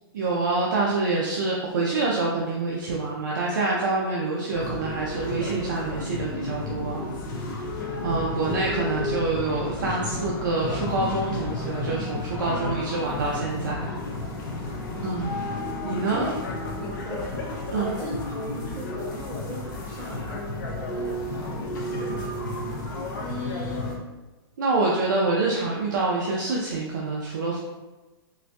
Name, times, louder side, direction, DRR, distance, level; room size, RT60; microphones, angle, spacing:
voice 1, 0.1-7.1 8.0-13.9 15.0-15.3 15.8-16.2 17.7-17.9 23.2-24.0 24.6-27.6, right 3 dB, 45° right, -3 dB, 0.4 m, -26 dB
sound 1, 4.5-24.0, left 2 dB, 45° left, 0.6 m, -32 dB
voice 2, 8.0-8.5 15.8-22.3, right 1 dB, 20° right, -9 dB, 1.0 m, -38 dB
3.8 x 2.5 x 2.2 m, 1.1 s
hypercardioid pair, 180°, 14 cm